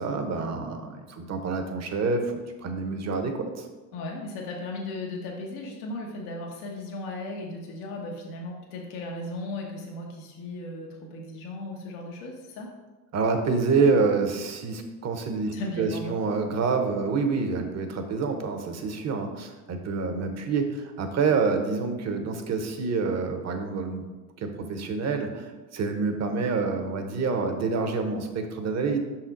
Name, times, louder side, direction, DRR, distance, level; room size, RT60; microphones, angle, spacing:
voice 1, 0.0-3.7 13.1-24.0 24.4-29.0, right 4 dB, 35° right, 5 dB, 0.9 m, -27 dB
voice 2, 3.9-12.7 15.5-16.2, left 2 dB, 75° left, 0 dB, 1.2 m, -36 dB
5.6 x 4.3 x 3.8 m, 1.2 s
hypercardioid pair, 80°, 45 cm